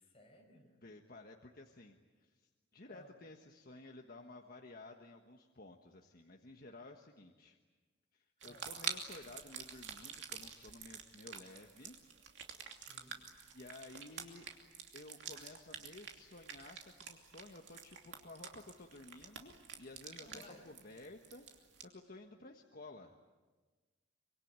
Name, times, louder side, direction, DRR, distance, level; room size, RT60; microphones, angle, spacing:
voice 1, 0.1-0.7 2.9-3.1 8.4-8.7 12.7-13.2 20.1-20.7, left 1 dB, 30° left, 2 dB, 5.5 m, -59 dB
voice 2, 0.8-7.6 8.1-12.0 12.4-12.5 13.5-14.5 14.9-23.2, left 2 dB, 50° left, 2 dB, 1.4 m, -54 dB
sound 1, 8.4-21.8, right 7 dB, 65° right, 2.8 m, -48 dB
25.0 x 23.5 x 9.0 m, 1.3 s
head